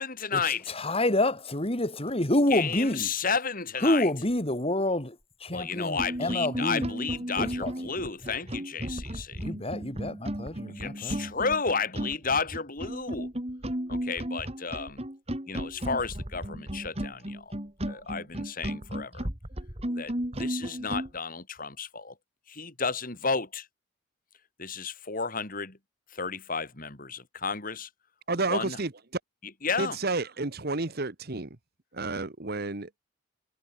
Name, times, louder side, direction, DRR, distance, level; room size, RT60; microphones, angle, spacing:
voice 1, 0.0-0.7 2.5-4.1 5.5-9.4 10.7-13.3 13.9-15.0 15.5-17.5 17.9-19.3 20.0-22.1 22.5-23.7 24.6-25.8 26.1-27.9 28.5-28.8 29.6-30.0, left 5 dB, 45° left, 3.4 m, -32 dB
voice 2, 0.7-3.1 3.8-5.2 5.4-6.9 7.4-7.7 9.4-11.3, left 1 dB, 30° left, 3.0 m, -28 dB
sound 1, 5.5-5.6 5.9-21.1, equal, 30° right, 3.8 m, -34 dB
voice 3, 28.3-28.9 29.8-31.5 31.9-33.0, right 3 dB, 55° right, 1.4 m, -31 dB
head